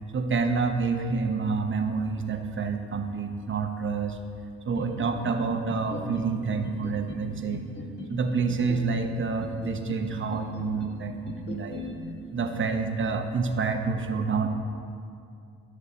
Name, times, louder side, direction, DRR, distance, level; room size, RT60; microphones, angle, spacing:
voice 1, 0.1-4.2 4.6-7.6 8.1-11.9 12.3-14.5, right 4 dB, 40° right, 6 dB, 0.9 m, -28 dB
sound 1, 4.7-5.4 5.7-6.3 6.6-7.2 7.5-8.1 8.5-9.1 9.4-10.0 10.3-10.9 11.3-11.9, left 2 dB, 35° left, 1.6 m, -38 dB
13.0 x 6.5 x 4.2 m, 2.5 s
cardioid pair, 90°, 30 cm